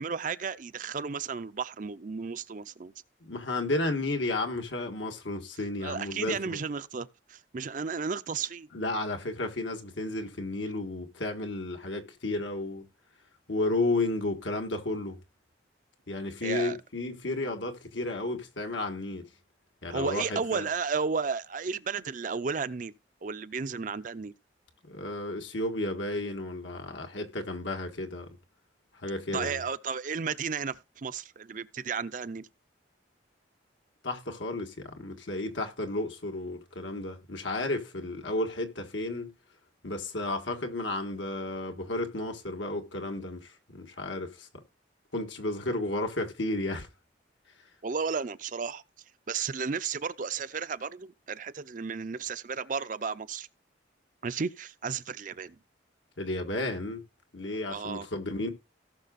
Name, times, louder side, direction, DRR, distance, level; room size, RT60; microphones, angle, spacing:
voice 1, 0.0-2.9 5.8-8.7 16.4-16.8 19.9-24.3 29.3-32.5 47.8-48.8 49.3-53.5 54.2-55.6 57.7-58.1, right 5 dB, 45° right, 0.5 m, -33 dB
voice 2, 3.2-6.6 8.7-12.8 13.5-15.2 16.1-19.2 19.8-20.7 24.8-28.3 29.0-29.6 34.0-39.3 39.8-44.6 45.1-46.9 56.2-57.0 57.3-58.5, left 2 dB, 80° left, 1.6 m, -32 dB
17.5 x 6.0 x 2.5 m
head